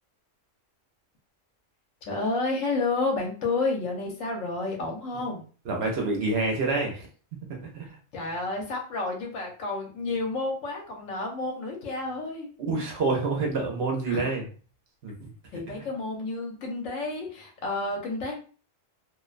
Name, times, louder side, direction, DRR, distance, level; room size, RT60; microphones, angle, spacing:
voice 1, 2.1-5.4 8.1-12.5 14.1-14.3 15.5-18.3, left 3 dB, 80° left, 1 dB, 1.1 m, -30 dB
voice 2, 5.6-7.1 7.6-8.0 12.7-14.4 15.0-15.9, right 3 dB, 60° right, 1 dB, 0.8 m, -28 dB
2.5 x 2.1 x 2.4 m, 0.39 s
omnidirectional pair, 1.3 m